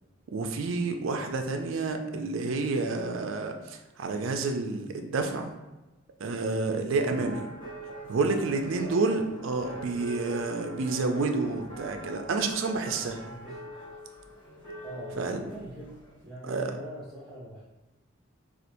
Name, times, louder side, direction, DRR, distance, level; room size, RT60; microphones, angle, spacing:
voice 1, 0.3-5.5 6.2-7.4 8.1-13.2 15.2-15.4 16.5-16.8, right 3 dB, 70° right, 5 dB, 0.4 m, -29 dB
sound 1, 7.0-16.2, right 1 dB, 25° left, 0.9 m, -43 dB
voice 2, 13.2-13.6 14.8-17.6, equal, 5° right, -11 dB, 1.0 m, -42 dB
4.2 x 2.4 x 2.6 m, 1.1 s
head